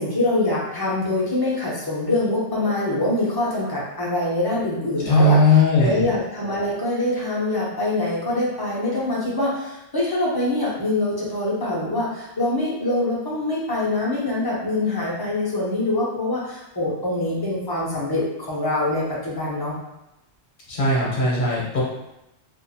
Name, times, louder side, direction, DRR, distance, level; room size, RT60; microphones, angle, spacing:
voice 1, 0.0-5.4 5.8-19.8, left 2 dB, 25° left, -6 dB, 0.6 m, -24 dB
voice 2, 5.0-6.0 20.7-21.8, left 2 dB, 50° left, -5 dB, 0.9 m, -18 dB
2.5 x 2.4 x 2.7 m, 0.92 s
omnidirectional pair, 1.2 m